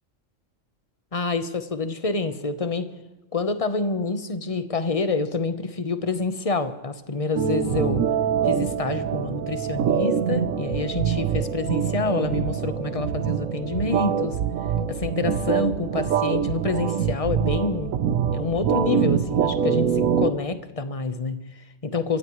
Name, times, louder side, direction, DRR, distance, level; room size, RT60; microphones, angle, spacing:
voice 1, 1.1-2.9 3.3-8.1 8.4-14.4 14.9-18.0 18.3-22.2, left 3 dB, 30° left, 10 dB, 1.1 m, -27 dB
sound 1, 7.4-20.3, right 8 dB, 85° right, 1.2 m, -24 dB
29.0 x 15.0 x 3.2 m, 1.2 s
omnidirectional pair, 1.3 m